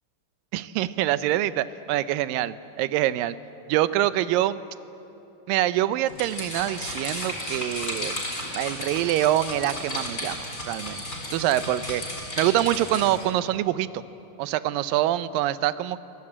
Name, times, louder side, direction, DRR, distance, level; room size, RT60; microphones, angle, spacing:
voice 1, 0.5-3.4 3.7-4.6 5.5-8.2 8.6-11.0 11.3-12.0 12.4-14.0 14.4-16.0, right 13 dB, 90° right, 15 dB, 2.4 m, -25 dB
sound 1, 6.1-13.2, left 1 dB, 25° left, 5.9 m, -34 dB
24.5 x 18.5 x 8.7 m, 2.9 s
omnidirectional pair, 3.9 m